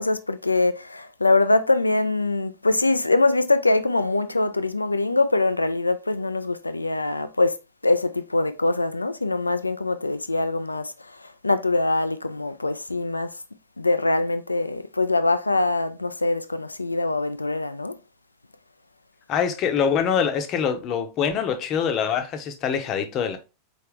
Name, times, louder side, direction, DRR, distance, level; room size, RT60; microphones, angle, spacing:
voice 1, 0.0-7.6 7.8-10.9 11.4-13.3 13.8-18.0, left 2 dB, 80° left, 0.3 m, -23 dB
voice 2, 19.3-23.4, left 7 dB, 35° left, 0.8 m, -24 dB
4.6 x 3.4 x 3.2 m
figure-of-eight pair, 90°, 0 cm